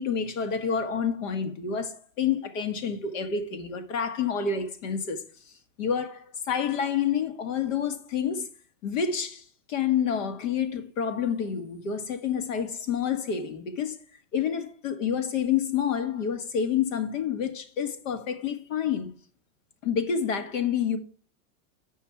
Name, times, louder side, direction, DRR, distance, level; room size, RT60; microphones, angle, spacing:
voice 1, 0.0-5.2 5.8-8.5 8.8-14.0 14.3-19.1 19.8-21.0, left 7 dB, 75° left, 1.7 m, -28 dB
8.6 x 5.6 x 4.5 m
supercardioid pair, 175°, 39 cm